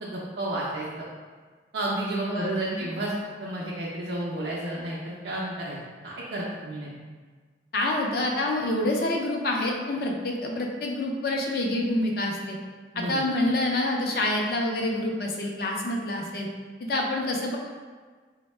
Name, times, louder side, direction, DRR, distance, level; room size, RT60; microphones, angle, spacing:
voice 1, 0.0-0.9 1.7-3.1 3.4-5.8 6.0-6.9 12.9-13.2, right 1 dB, 60° right, -5 dB, 0.4 m, -31 dB
voice 2, 2.3-2.9 7.7-12.6 13.0-16.5 16.8-17.6, left 1 dB, 55° left, 0 dB, 0.4 m, -27 dB
3.5 x 2.1 x 3.1 m, 1.5 s
head